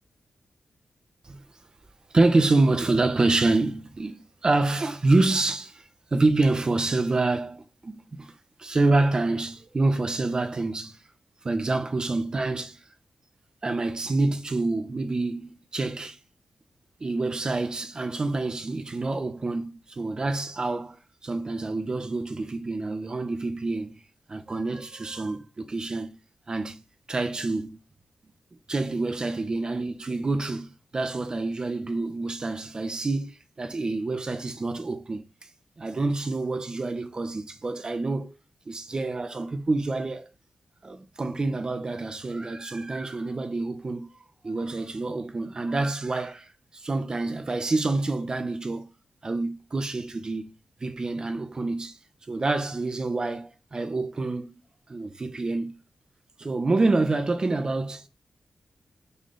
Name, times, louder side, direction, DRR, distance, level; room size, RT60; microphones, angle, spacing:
voice 1, 2.1-8.3 8.6-11.0 11.4-12.8 13.6-16.2 17.0-21.0 21.2-24.0 24.3-26.2 26.5-26.8 27.1-27.8 28.7-35.2 35.8-38.3 38.7-40.3 40.8-44.1 44.4-48.9 49.2-50.5 50.8-52.0 52.3-54.6 54.9-55.8 56.4-58.1, right 2 dB, 30° right, 1.3 m, -27 dB
6.9 x 5.1 x 6.9 m
wide cardioid pair, 135°, 3 cm